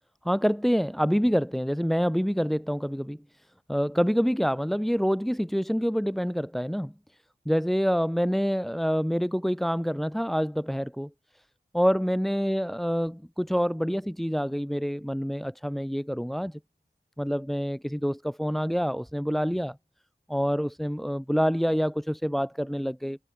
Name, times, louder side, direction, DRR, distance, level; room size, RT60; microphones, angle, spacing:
voice 1, 0.2-3.2 3.7-6.9 7.4-11.1 11.7-16.6 17.2-19.8 20.3-23.2, equal, ahead, 3.3 m, -26 dB
wide cardioid pair, 70°, 18 cm